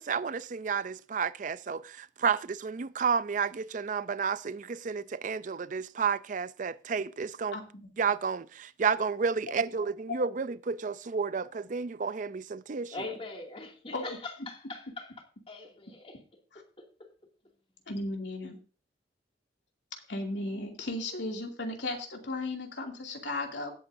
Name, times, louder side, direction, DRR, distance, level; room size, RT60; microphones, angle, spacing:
voice 1, 0.0-7.6 8.0-12.9, right 5 dB, 45° right, 0.4 m, -31 dB
voice 2, 7.5-7.9 13.9-14.2 16.5-16.6 17.9-18.6 20.1-23.7, left 2 dB, 85° left, 2.6 m, -35 dB
voice 3, 12.9-15.1 15.5-16.2 16.5-17.1, left 3 dB, 30° left, 2.4 m, -42 dB
18.0 x 8.4 x 2.6 m
head